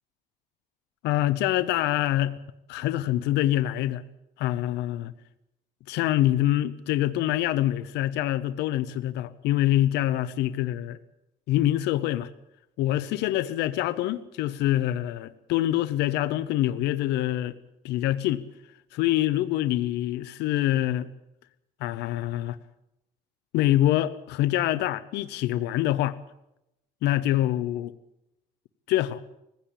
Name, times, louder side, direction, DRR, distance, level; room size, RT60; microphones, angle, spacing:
voice 1, 1.0-2.4 2.7-4.0 4.4-5.1 5.9-11.0 11.5-12.3 12.8-17.6 17.8-18.4 18.9-21.1 21.8-22.6 23.5-26.2 27.0-27.9 28.9-29.2, left 14 dB, 85° left, 0.9 m, -25 dB
19.5 x 16.0 x 8.5 m
cardioid pair, 110°, 17 cm